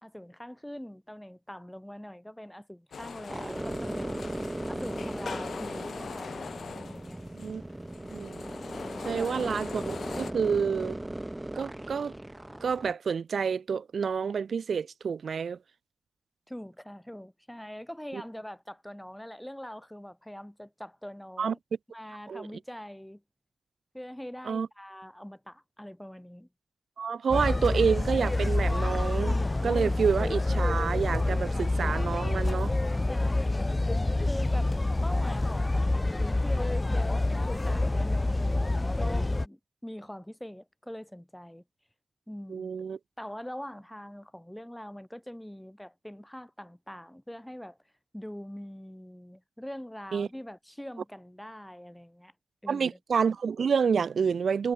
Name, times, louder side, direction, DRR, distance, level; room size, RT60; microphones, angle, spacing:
voice 1, 0.0-4.2 4.7-6.4 6.8-7.2 9.0-9.3 16.5-21.6 21.9-23.2 23.9-26.5 33.0-34.7 35.0-41.6 42.3-42.7 43.2-47.8 48.1-52.3 52.6-53.0, equal, 5° left, 3.8 m, -43 dB
sound 1, 2.9-10.3, left 6 dB, 75° left, 1.5 m, -42 dB
sound 2, 3.3-12.9, right 1 dB, 10° right, 1.9 m, -37 dB
voice 2, 9.0-11.0 11.5-12.1 12.6-15.6 18.1-18.2 21.4-21.5 22.3-22.5 24.5-24.7 27.0-32.7 42.5-43.0 50.1-50.3 52.7-54.7, right 6 dB, 75° right, 1.0 m, -28 dB
sound 3, 27.3-39.5, left 2 dB, 20° left, 1.0 m, -27 dB
wide cardioid pair, 130°, 0 cm